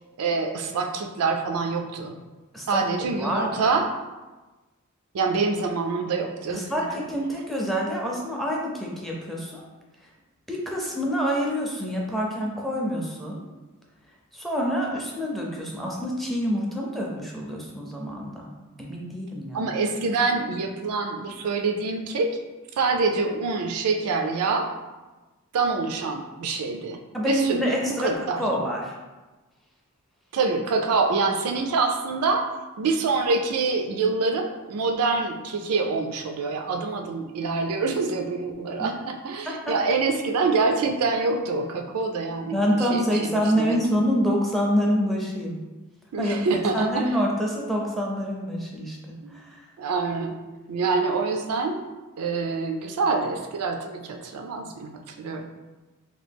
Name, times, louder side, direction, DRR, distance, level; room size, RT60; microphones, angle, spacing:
voice 1, 0.2-2.1 2.7-3.9 5.1-6.6 19.5-22.3 22.8-24.7 25.5-27.0 27.2-27.6 27.9-28.5 30.3-32.4 32.8-42.6 42.9-44.0 46.1-47.1 49.2-49.3 49.8-50.4 50.7-51.9 52.2-55.4, right 4 dB, 85° right, 4 dB, 0.4 m, -26 dB
voice 2, 3.2-3.8 6.5-9.6 10.5-13.4 14.3-18.5 18.8-19.7 27.1-29.0 38.8-38.9 39.5-39.7 42.5-45.6 46.2-46.4 46.7-49.6, equal, ahead, -2 dB, 0.4 m, -27 dB
3.0 x 2.3 x 3.4 m, 1.2 s
head